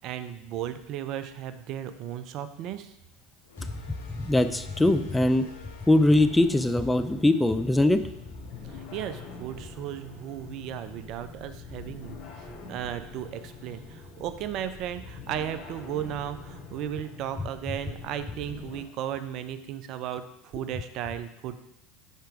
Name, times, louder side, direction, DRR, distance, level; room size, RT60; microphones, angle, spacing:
voice 1, 0.0-2.9 8.6-21.6, right 10 dB, 50° right, 11 dB, 0.5 m, -35 dB
sound 1, 3.5-9.3, left 3 dB, 75° left, 1.0 m, -48 dB
voice 2, 3.9-5.5 5.9-8.0, left 1 dB, 10° left, 10 dB, 0.4 m, -22 dB
sound 2, 6.1-18.8, left 4 dB, 50° left, 1.9 m, -44 dB
6.7 x 4.5 x 4.9 m, 0.82 s
figure-of-eight pair, 75°, 0 cm